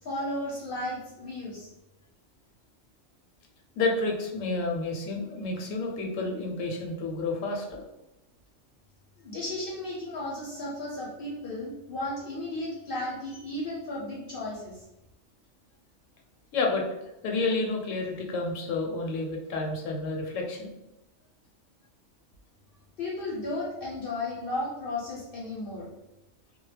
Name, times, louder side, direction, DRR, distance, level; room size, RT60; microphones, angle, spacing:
voice 1, 0.0-1.7 9.2-14.8 23.0-25.9, left 1 dB, 55° left, -4 dB, 0.7 m, -34 dB
voice 2, 3.8-7.8 16.5-16.8 17.2-20.7, left 3 dB, 80° left, 1 dB, 0.9 m, -30 dB
2.2 x 2.0 x 3.2 m, 0.90 s
omnidirectional pair, 1.3 m